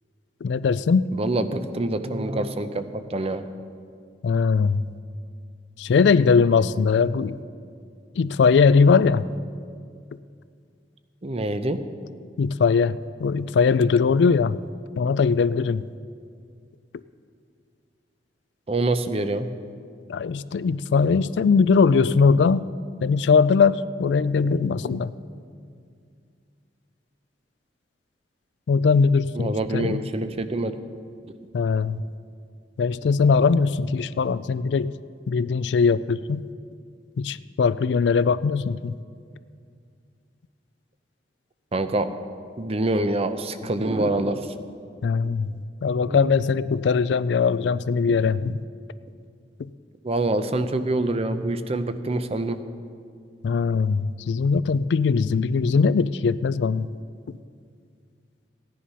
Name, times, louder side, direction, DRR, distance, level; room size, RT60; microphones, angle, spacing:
voice 1, 0.4-1.0 4.2-4.8 5.8-7.4 8.2-9.2 12.4-14.6 15.0-15.9 20.1-22.7 23.0-25.1 28.7-30.0 31.5-32.0 32.8-34.9 35.3-36.4 37.2-38.9 45.0-45.5 45.8-48.6 49.6-49.7 53.4-56.9, left 5 dB, 70° left, 17 dB, 0.4 m, -20 dB
voice 2, 1.1-3.5 11.2-11.8 18.7-19.5 24.6-24.9 29.4-30.8 41.7-42.1 42.5-44.5 45.2-45.3 46.1-46.3 50.0-52.6, right 2 dB, 35° right, 10 dB, 0.7 m, -26 dB
15.5 x 10.0 x 5.6 m, 2.2 s
head